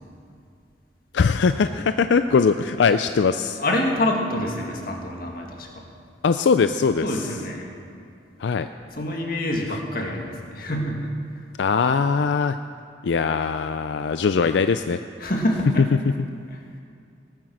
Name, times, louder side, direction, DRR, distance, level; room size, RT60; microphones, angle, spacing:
voice 1, 1.1-3.6 6.2-7.2 8.4-8.7 11.6-12.6 13.0-15.0 15.8-16.1, left 5 dB, 85° left, 10 dB, 0.4 m, -21 dB
voice 2, 3.6-5.8 7.0-7.7 8.9-11.0 15.2-15.9, left 1 dB, 55° left, 1 dB, 1.9 m, -26 dB
19.0 x 9.1 x 6.3 m, 2.4 s
head